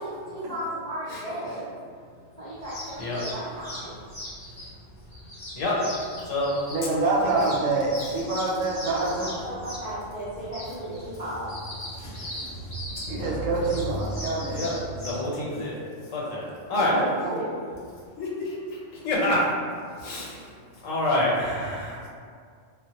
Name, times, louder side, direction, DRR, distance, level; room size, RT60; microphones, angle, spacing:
voice 1, 0.0-1.6 2.4-3.9 8.8-11.5 16.9-17.5, right 1 dB, 50° right, -10 dB, 0.5 m, -34 dB
voice 2, 1.1-1.6 3.0-3.3 5.5-5.9 6.2-6.5 7.0-7.4 10.8-11.2 11.8-13.8 14.5-15.8 16.0-17.0 18.0-19.5 19.9-22.1, left 1 dB, 90° left, -4 dB, 1.0 m, -29 dB
sound 1, 2.6-15.1, equal, 40° left, 0.7 m, -38 dB
voice 3, 6.7-9.4 13.1-14.6 16.8-16.9 17.2-17.4, right 3 dB, 85° right, -3 dB, 1.0 m, -26 dB
2.1 x 2.0 x 2.8 m, 2.1 s
omnidirectional pair, 1.3 m